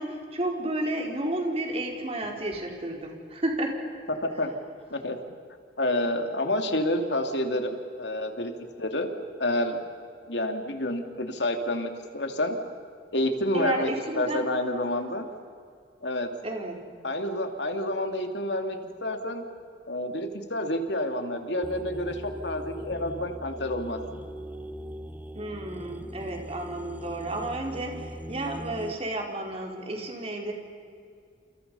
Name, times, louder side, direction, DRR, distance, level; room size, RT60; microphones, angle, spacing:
voice 1, 0.0-3.8 13.5-14.5 16.4-16.7 25.3-30.5, right 1 dB, 35° right, 1 dB, 4.5 m, -32 dB
voice 2, 5.8-8.5 8.8-9.1 9.4-9.8 10.3-12.6 13.1-13.9 14.1-15.3 16.0-16.3 17.0-19.4 19.9-24.2, left 1 dB, 80° left, 5 dB, 2.8 m, -29 dB
sound 1, 21.6-28.9, equal, 10° right, 0.9 m, -40 dB
29.5 x 28.5 x 5.6 m, 2.3 s
head